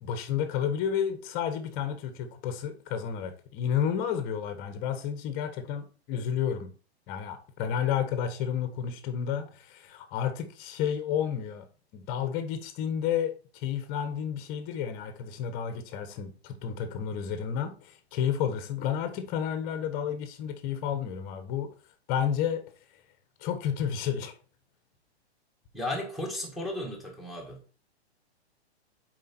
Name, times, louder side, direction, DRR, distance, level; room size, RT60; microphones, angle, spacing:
voice 1, 0.0-6.7 7.1-11.7 11.9-13.3 13.6-21.7 22.1-22.6 23.4-24.3, left 8 dB, 25° left, 1.2 m, -31 dB
voice 2, 25.7-27.6, left 1 dB, ahead, 1.8 m, -34 dB
7.5 x 4.9 x 4.4 m
hypercardioid pair, 145°, 33 cm